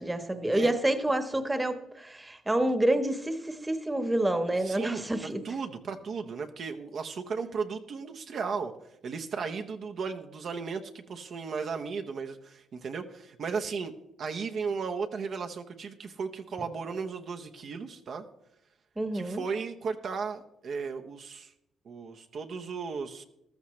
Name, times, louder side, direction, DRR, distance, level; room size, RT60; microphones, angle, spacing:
voice 1, 0.0-5.5 19.0-19.4, right 1 dB, 15° right, 9 dB, 1.2 m, -28 dB
voice 2, 4.6-8.7 9.0-13.9 14.2-18.2 19.1-21.5 21.9-23.2, right 5 dB, 60° right, 5 dB, 0.9 m, -35 dB
14.5 x 13.0 x 3.2 m, 0.84 s
cardioid pair, 90°, 0 cm